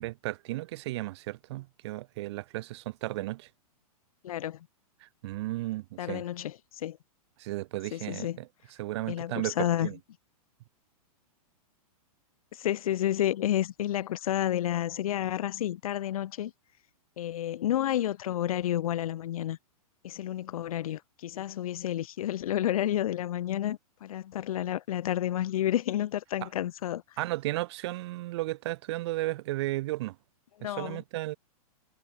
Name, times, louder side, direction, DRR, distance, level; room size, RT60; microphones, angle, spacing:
voice 1, 0.0-3.5 5.0-6.2 7.4-8.5 8.8-10.0 27.2-30.2 30.6-31.4, right 18 dB, 45° right, 1.9 m, -34 dB
voice 2, 4.2-4.7 6.0-7.0 7.9-8.4 9.1-9.9 12.5-16.5 17.2-19.6 20.0-27.0 30.6-31.0, left 12 dB, 65° left, 1.1 m, -30 dB
hypercardioid pair, 160°, 19 cm